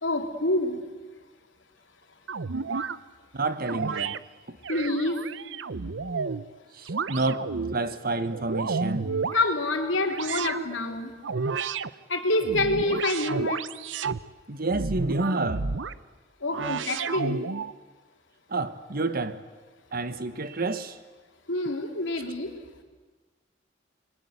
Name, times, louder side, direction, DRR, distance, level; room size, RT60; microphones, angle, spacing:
voice 1, 0.0-0.8 4.7-5.2 9.3-11.1 12.1-13.6 16.4-17.5 21.5-22.5, left 2 dB, 85° left, 3.2 m, -27 dB
sound 1, 2.3-3.0 3.7-4.2 4.6-6.4 6.9-7.8 8.2-9.4 10.1-10.7 11.2-11.9 12.4-14.2 14.7-15.9 16.5-17.7, right 4 dB, 75° right, 0.7 m, -31 dB
voice 2, 3.3-4.2 4.5-4.6 6.7-9.1 12.9-13.0 14.5-15.7 18.5-19.4 19.9-21.0, right 2 dB, 55° right, 1.3 m, -29 dB
28.5 x 22.5 x 8.1 m
head